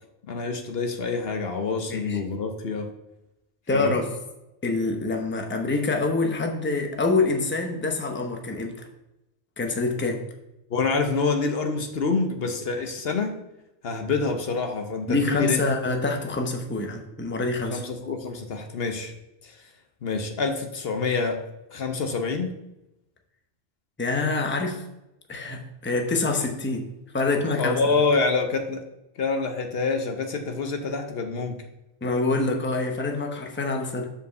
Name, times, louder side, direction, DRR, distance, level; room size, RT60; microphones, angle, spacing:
voice 1, 0.3-2.9 3.7-4.0 10.7-13.4 13.8-15.6 17.7-19.1 19.4-19.6 20.0-21.4 21.7-22.5 27.6-28.8 29.2-31.6, left 4 dB, 65° left, 5 dB, 1.0 m, -26 dB
voice 2, 3.7-4.1 4.6-8.9 9.6-10.2 15.1-17.8 24.0-24.8 25.3-26.9 27.1-27.8 32.0-34.1, left 3 dB, 10° left, 2 dB, 0.8 m, -26 dB
5.4 x 5.1 x 6.6 m, 0.91 s
omnidirectional pair, 1.1 m